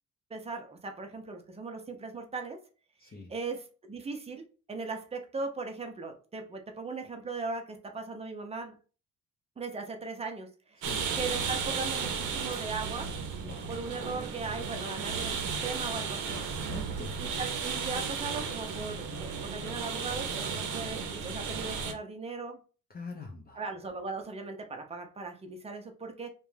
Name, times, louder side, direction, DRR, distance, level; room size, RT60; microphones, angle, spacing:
voice 1, 0.3-2.6 3.1-8.8 9.6-10.9 11.1-13.1 13.7-16.4 17.2-22.6 23.6-26.3, right 3 dB, 20° right, 4 dB, 0.6 m, -38 dB
voice 2, 3.0-3.3 10.8-11.1 13.4-13.7 16.6-17.2 22.9-23.6, left 3 dB, 30° left, 1 dB, 0.6 m, -44 dB
sound 1, 10.8-21.9, right 5 dB, 85° right, 0.6 m, -34 dB
2.5 x 2.2 x 3.2 m, 0.36 s
cardioid pair, 90°, 30 cm